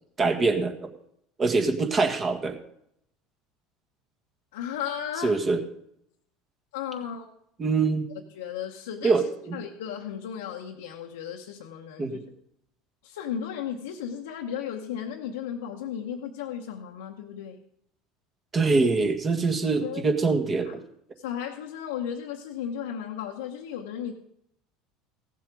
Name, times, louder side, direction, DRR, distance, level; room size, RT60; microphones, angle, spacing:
voice 1, 0.2-0.9 1.4-2.6 5.2-5.6 7.6-8.1 9.0-9.6 12.0-12.2 18.5-20.8, right 4 dB, 30° right, 5 dB, 1.7 m, -24 dB
voice 2, 4.5-5.4 6.7-7.3 8.1-9.2 9.5-12.2 13.0-17.6 19.8-20.0 20.7-20.8 21.2-24.1, left 9 dB, 80° left, 0 dB, 0.8 m, -35 dB
16.0 x 7.6 x 5.1 m, 0.75 s
hypercardioid pair, 75°, 0 cm